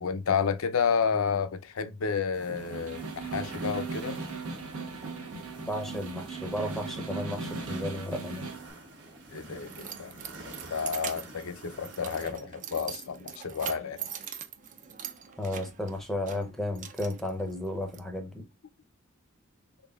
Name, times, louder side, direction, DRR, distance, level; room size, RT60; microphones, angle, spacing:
voice 1, 0.0-4.2 9.3-10.1 10.7-14.1, left 6 dB, 70° left, 0.5 m, -30 dB
sound 1, 2.3-12.3, right 2 dB, 60° right, 1.4 m, -47 dB
Snare drum, 2.6-8.7, right 4 dB, 75° right, 0.9 m, -38 dB
voice 2, 5.6-8.5 15.4-18.4, left 1 dB, ahead, 0.7 m, -33 dB
Keys jangling, 8.9-18.0, right 8 dB, 35° right, 0.5 m, -42 dB
4.0 x 3.5 x 2.3 m
head